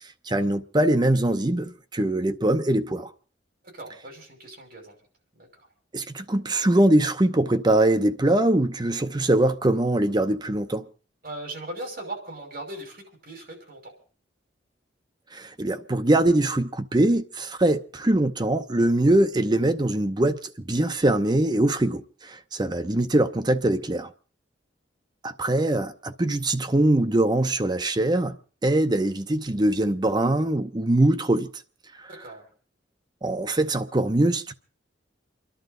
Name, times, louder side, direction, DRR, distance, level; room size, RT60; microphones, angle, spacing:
voice 1, 0.3-3.1 5.9-10.9 15.3-24.1 25.2-31.5 33.2-34.5, right 1 dB, 25° right, 0.7 m, -22 dB
voice 2, 3.7-4.9 5.3-5.5 11.2-13.9 32.2-32.5, right 1 dB, 55° right, 5.6 m, -38 dB
29.0 x 11.5 x 3.8 m
head